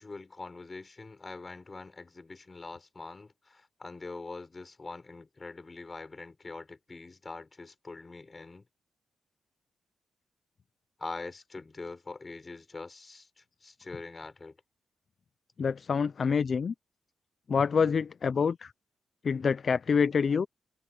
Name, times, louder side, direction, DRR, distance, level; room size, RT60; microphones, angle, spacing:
voice 1, 0.0-8.6 11.0-14.6 20.3-20.4, left 3 dB, 20° left, 4.8 m, -44 dB
voice 2, 15.6-16.7 17.5-18.7 19.2-20.5, left 6 dB, 40° left, 0.4 m, -26 dB
wide cardioid pair, 165°, 0 cm